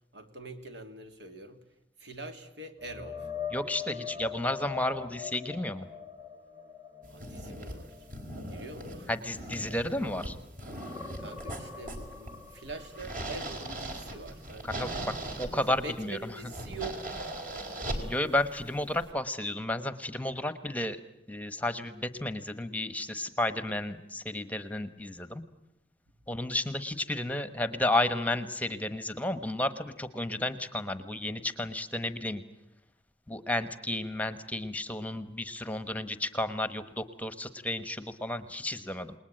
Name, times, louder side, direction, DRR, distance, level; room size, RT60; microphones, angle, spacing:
voice 1, 0.1-1.6 2.0-3.3 7.1-8.1 8.5-9.2 11.2-15.2 15.5-17.1 17.5-18.1, right 2 dB, 65° right, 6 dB, 2.9 m, -44 dB
sound 1, 2.8-10.2 10.5-14.4 14.8-15.0 18.4-18.5, left 7 dB, 15° right, 1.6 m, -43 dB
voice 2, 3.5-5.9 9.1-10.4 14.6-16.2 18.0-21.0 21.3-25.4 26.3-32.4 33.3-39.1, left 1 dB, 10° left, 12 dB, 1.1 m, -32 dB
sound 2, 7.0-19.1, right 1 dB, 45° right, 4.7 m, -40 dB
28.5 x 20.0 x 9.0 m, 0.87 s
head